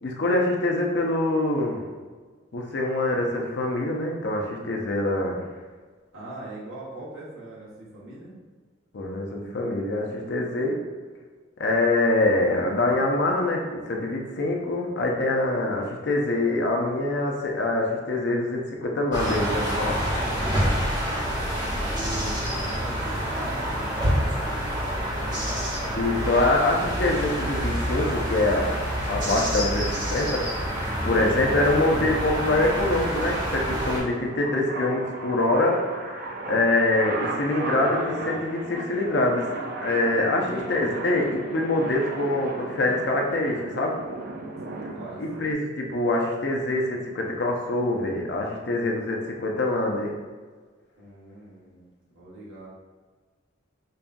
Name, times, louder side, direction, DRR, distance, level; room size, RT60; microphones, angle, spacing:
voice 1, 0.0-1.8 2.5-5.4 8.9-10.8 11.6-20.0 26.0-28.8 29.1-38.6 38.9-39.5 39.8-44.0 45.2-50.1, left 2 dB, 60° left, 0 dB, 0.6 m, -25 dB
voice 2, 6.1-8.3 21.2-26.2 37.8-38.8 40.1-41.1 44.6-45.2 51.0-51.8 52.1-52.7, right 1 dB, 90° right, -7 dB, 1.3 m, -40 dB
sound 1, 19.1-34.0, equal, 20° right, 0.9 m, -27 dB
sound 2, 30.7-45.5, right 2 dB, 50° right, 0.4 m, -37 dB
5.3 x 2.3 x 2.5 m, 1.5 s
head